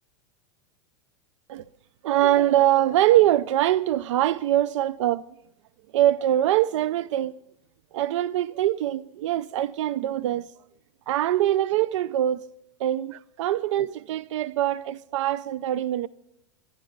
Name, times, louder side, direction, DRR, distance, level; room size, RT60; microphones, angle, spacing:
voice 1, 2.0-5.2 5.9-7.3 7.9-10.5 11.1-12.5 12.8-16.1, right 13 dB, 75° right, 0.4 m, -23 dB
22.5 x 12.0 x 3.8 m
supercardioid pair, 140°, 16 cm